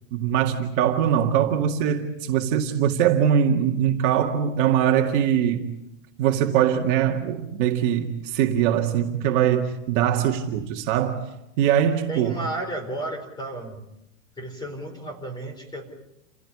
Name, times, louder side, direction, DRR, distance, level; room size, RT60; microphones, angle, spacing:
voice 1, 0.1-5.7 6.2-11.2 11.6-12.4, right 9 dB, 40° right, 2.1 m, -22 dB
voice 2, 12.1-13.8 14.4-15.9, right 1 dB, 10° left, 4.9 m, -33 dB
29.0 x 16.5 x 9.8 m
supercardioid pair, 155°, 38 cm